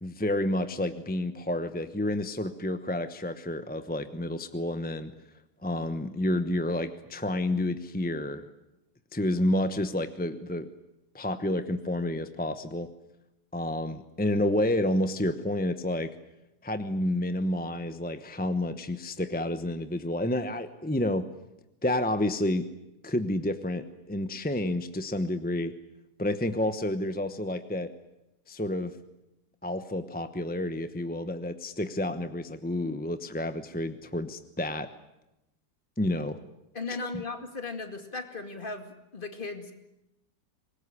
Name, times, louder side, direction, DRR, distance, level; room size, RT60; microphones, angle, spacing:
voice 1, 0.0-5.1 5.6-8.4 9.1-10.7 11.1-12.9 13.5-16.1 16.6-21.3 21.8-22.7 23.0-25.7 26.2-27.9 28.5-28.9 29.6-34.9 36.0-36.4 37.0-37.1, left 1 dB, 10° left, 10 dB, 0.6 m, -30 dB
voice 2, 36.7-39.7, left 3 dB, 30° left, 6 dB, 2.4 m, -37 dB
24.5 x 21.0 x 9.8 m, 0.91 s
omnidirectional pair, 1.9 m